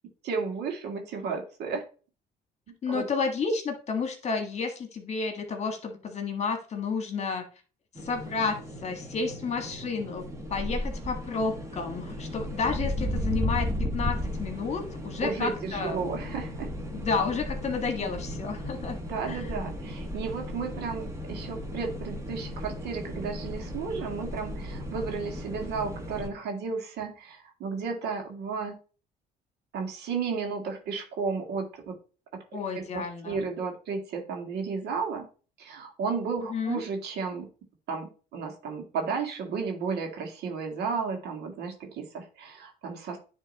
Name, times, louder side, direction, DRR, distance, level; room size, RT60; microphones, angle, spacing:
voice 1, 0.2-1.8 2.7-3.1 15.2-16.7 19.1-28.8 29.7-32.0 32.3-35.3 35.6-37.5 37.9-43.2, right 5 dB, 75° right, 3 dB, 2.0 m, -33 dB
voice 2, 2.8-7.4 8.0-10.2 10.5-13.7 13.9-16.1 16.9-18.9 19.3-19.4 32.5-33.4 36.5-36.8, left 4 dB, 40° left, 5 dB, 1.7 m, -31 dB
sound 1, 8.0-26.3, equal, 15° right, 1.5 m, -35 dB
9.8 x 3.5 x 4.1 m, 0.36 s
cardioid pair, 110°, 17 cm